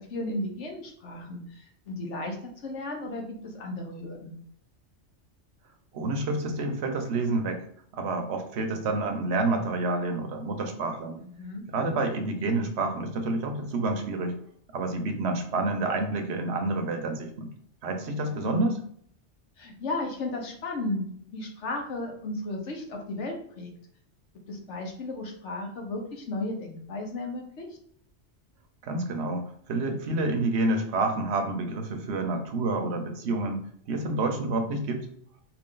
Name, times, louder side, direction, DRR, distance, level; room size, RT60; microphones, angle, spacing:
voice 1, 0.0-4.3 11.2-11.7 18.2-18.7 19.6-23.7 24.5-27.7, left 2 dB, 80° left, 2 dB, 1.3 m, -35 dB
voice 2, 5.9-7.6 7.9-11.2 11.7-14.3 14.7-17.5 17.8-18.8 28.8-29.4 29.7-33.6 33.9-35.1, right 2 dB, 70° right, 4 dB, 1.0 m, -28 dB
4.9 x 2.5 x 3.7 m, 0.64 s
omnidirectional pair, 1.2 m